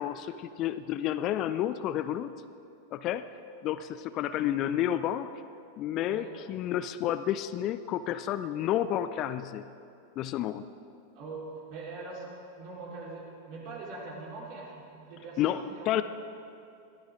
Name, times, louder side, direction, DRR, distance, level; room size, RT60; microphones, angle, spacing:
voice 1, 0.0-2.3 2.9-3.3 3.6-5.3 5.8-9.6 10.2-10.7 15.4-15.6 15.9-16.0, left 11 dB, 35° left, 12 dB, 0.5 m, -30 dB
voice 2, 11.1-15.9, right 3 dB, 45° right, -4 dB, 4.3 m, -42 dB
22.5 x 15.0 x 3.8 m, 2.5 s
figure-of-eight pair, 90°, 0 cm